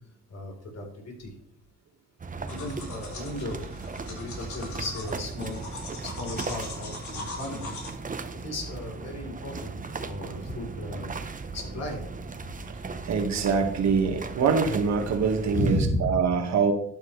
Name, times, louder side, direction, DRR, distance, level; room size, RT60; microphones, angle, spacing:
voice 1, 0.3-1.3 2.5-3.7 4.1-5.6 6.0-7.7 8.4-11.1 11.5-12.1 15.5-16.2, left 1 dB, 55° left, 1 dB, 4.1 m, -34 dB
sound 1, 2.2-15.8, right 4 dB, 25° right, 1.0 m, -37 dB
sound 2, 2.5-7.9, left 3 dB, 75° left, 3.8 m, -41 dB
voice 2, 13.0-16.7, right 5 dB, 65° right, 4 dB, 1.9 m, -24 dB
12.0 x 8.9 x 3.3 m, 0.68 s
cardioid pair, 90°, 30 cm